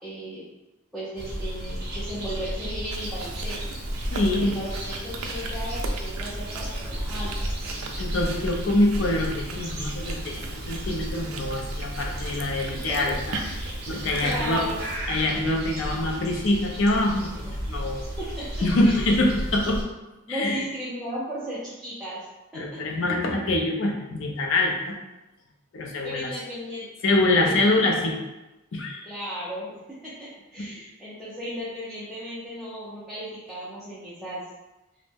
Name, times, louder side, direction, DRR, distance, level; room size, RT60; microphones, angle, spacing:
voice 1, 0.0-0.4 0.9-3.6 4.3-7.5 12.7-13.6 14.2-14.8 18.2-18.5 18.8-19.1 20.3-22.3 22.5-22.8 26.0-26.9 27.4-28.2 29.0-34.4, equal, ahead, -11 dB, 0.5 m, -35 dB
sound 1, 1.2-19.8, equal, 50° right, 0.6 m, -33 dB
Chewing mastication, 2.9-15.0, right 4 dB, 80° right, 0.4 m, -39 dB
voice 2, 4.1-4.5 8.0-13.1 13.6-14.7 15.1-18.0 18.6-19.8 20.3-20.6 22.5-24.9 25.7-26.3 27.0-28.2 28.7-29.1, left 2 dB, 60° left, 0 dB, 0.5 m, -25 dB
2.5 x 2.1 x 3.3 m, 1.0 s
head